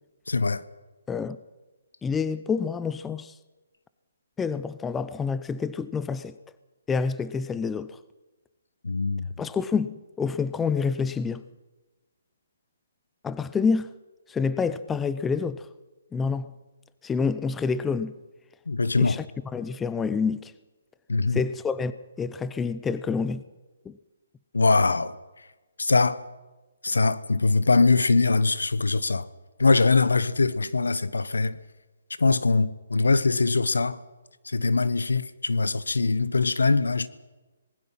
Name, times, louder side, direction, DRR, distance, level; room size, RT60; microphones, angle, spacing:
voice 1, 0.3-0.6 8.8-9.3 18.7-19.2 21.1-21.4 24.5-25.2 25.8-26.2 26.8-29.3 29.6-31.6 32.2-34.0 34.4-37.1, left 3 dB, 85° left, 1.2 m, -22 dB
voice 2, 2.0-3.3 4.4-6.4 6.9-8.0 9.4-11.4 13.2-13.9 14.3-15.7 16.1-16.5 17.0-18.1 19.0-19.3 19.5-20.5 21.3-21.9 22.2-23.4 23.8-24.0, left 5 dB, 10° left, 0.8 m, -27 dB
26.5 x 20.0 x 5.8 m
hypercardioid pair, 145°, 0 cm